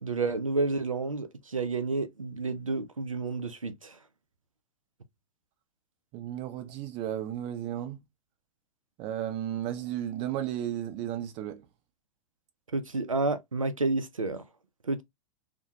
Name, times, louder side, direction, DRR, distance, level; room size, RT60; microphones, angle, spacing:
voice 1, 0.0-4.0 12.7-14.4 14.8-15.0, right 3 dB, 90° right, 0.4 m, -30 dB
voice 2, 6.1-8.0 9.0-11.6, right 11 dB, 35° right, 0.6 m, -34 dB
2.2 x 2.1 x 2.7 m
figure-of-eight pair, 95°, 17 cm